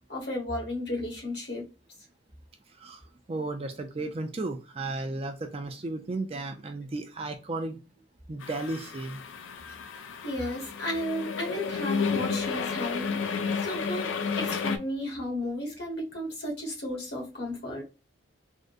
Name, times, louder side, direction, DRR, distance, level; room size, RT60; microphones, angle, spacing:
voice 1, 0.1-1.6 9.9-17.8, left 1 dB, 60° left, 1.3 m, -34 dB
voice 2, 3.3-7.8 8.3-9.2, right 2 dB, 30° right, 0.4 m, -34 dB
sound 1, 8.4-14.8, left 5 dB, 85° left, 0.4 m, -32 dB
3.6 x 2.1 x 2.5 m
head